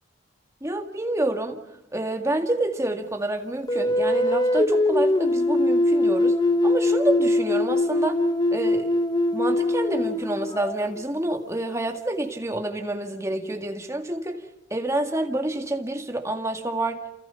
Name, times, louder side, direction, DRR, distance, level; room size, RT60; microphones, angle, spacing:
voice 1, 0.6-1.6 1.9-6.4 6.6-8.2 8.5-8.9 9.3-14.4 14.7-17.0, right 1 dB, 15° right, 2.0 m, -28 dB
sound 1, 3.7-11.0, left 1 dB, 20° left, 0.9 m, -22 dB
29.0 x 29.0 x 5.7 m
head